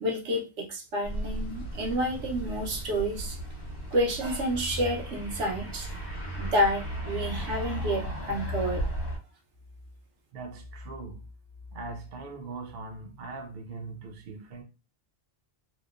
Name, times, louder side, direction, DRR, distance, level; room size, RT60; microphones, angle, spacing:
voice 1, 0.0-3.4 3.9-6.0 6.4-8.8, equal, 75° right, 1.0 m, -29 dB
sound 1, 1.0-9.2, equal, 55° left, 1.0 m, -35 dB
voice 2, 10.3-11.2 11.7-14.6, right 3 dB, 55° right, 0.6 m, -40 dB
2.9 x 2.1 x 2.3 m
omnidirectional pair, 1.2 m